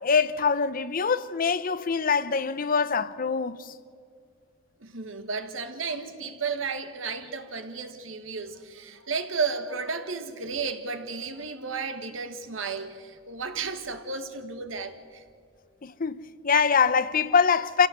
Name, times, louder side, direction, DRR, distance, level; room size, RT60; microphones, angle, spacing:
voice 1, 0.0-3.7 15.8-17.9, left 5 dB, 45° left, 0.7 m, -24 dB
voice 2, 4.8-15.2, right 5 dB, 80° right, 1.7 m, -33 dB
27.0 x 16.0 x 7.9 m
head